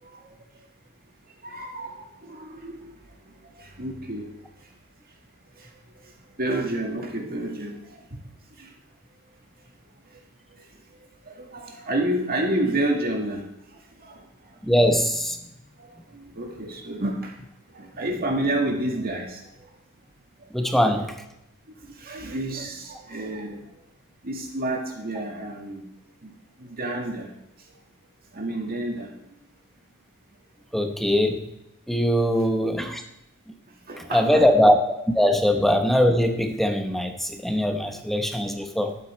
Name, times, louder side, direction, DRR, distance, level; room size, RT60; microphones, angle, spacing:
voice 1, 1.4-2.8 3.8-4.3 6.4-7.8 11.4-13.4 14.1-14.2 16.1-17.3 17.7-19.4 20.6-21.1 22.0-23.6 24.2-25.8 26.2-26.3 26.7-27.3 28.3-29.1 33.9-34.4, right 1 dB, 45° right, 1 dB, 2.0 m, -29 dB
voice 2, 14.6-15.4 20.5-21.1 30.7-31.5 31.9-33.0 34.1-34.8 35.1-39.0, equal, ahead, 6 dB, 0.9 m, -21 dB
11.5 x 8.4 x 4.5 m, 0.84 s
head